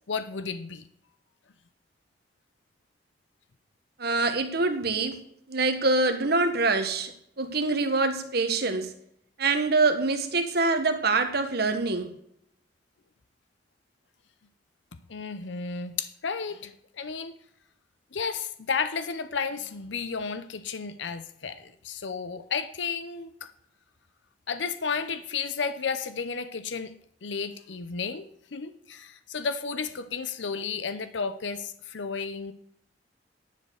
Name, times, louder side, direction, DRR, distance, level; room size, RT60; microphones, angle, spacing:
voice 1, 0.1-0.8 8.7-8.8 15.1-17.3 18.1-23.5 24.5-26.9 27.2-32.5, left 5 dB, 80° left, 11 dB, 0.7 m, -33 dB
voice 2, 4.0-5.2 5.5-7.1 7.4-8.9 9.4-12.1, right 3 dB, 60° right, 7 dB, 1.5 m, -25 dB
10.5 x 6.8 x 6.4 m, 0.69 s
head